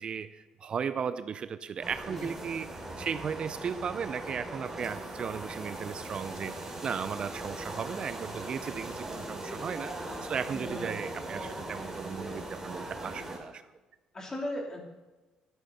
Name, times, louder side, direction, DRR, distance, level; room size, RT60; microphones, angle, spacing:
voice 1, 0.0-9.9 10.2-13.6, right 7 dB, 45° right, 13 dB, 0.5 m, -36 dB
sound 1, 1.8-13.4, right 1 dB, 20° right, 3.6 m, -40 dB
voice 2, 10.5-10.9 14.1-14.8, left 1 dB, 25° left, 0 dB, 3.6 m, -37 dB
13.0 x 10.0 x 4.3 m, 1.2 s
cardioid pair, 80°, 2 cm